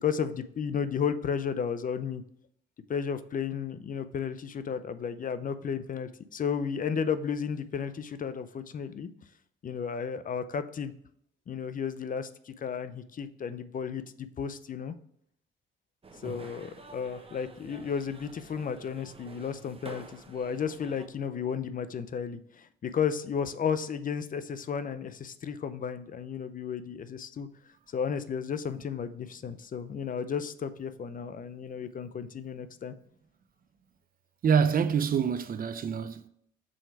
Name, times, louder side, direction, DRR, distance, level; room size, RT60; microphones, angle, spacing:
voice 1, 0.0-2.2 2.9-9.1 9.6-10.9 11.5-14.9 16.2-27.5 27.9-32.9, left 7 dB, 45° left, 0.6 m, -33 dB
sound 1, 16.0-21.1, right 3 dB, 30° right, 1.1 m, -49 dB
voice 2, 34.4-36.3, right 7 dB, 45° right, 0.6 m, -26 dB
6.3 x 4.6 x 4.6 m
cardioid pair, 90°, 20 cm